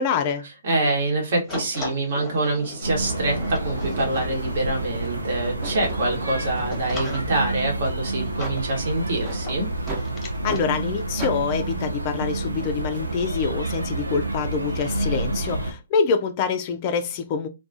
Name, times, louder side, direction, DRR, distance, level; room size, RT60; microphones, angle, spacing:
voice 1, 0.0-0.4 10.4-17.5, left 5 dB, 35° left, 0.3 m, -25 dB
voice 2, 0.6-9.7, right 2 dB, 55° right, 1.0 m, -25 dB
sound 1, 1.5-10.7, left 3 dB, 20° left, 0.7 m, -39 dB
sound 2, 2.5-2.6 3.3-3.6 3.9-7.3 7.8-8.0 8.4-8.6 9.2-9.4 9.9-10.1 10.5-10.6 11.2-11.4, right 3 dB, 25° right, 0.7 m, -37 dB
sound 3, 2.8-15.7, right 2 dB, 85° right, 0.5 m, -29 dB
2.3 x 2.2 x 2.5 m
figure-of-eight pair, 130°, 0 cm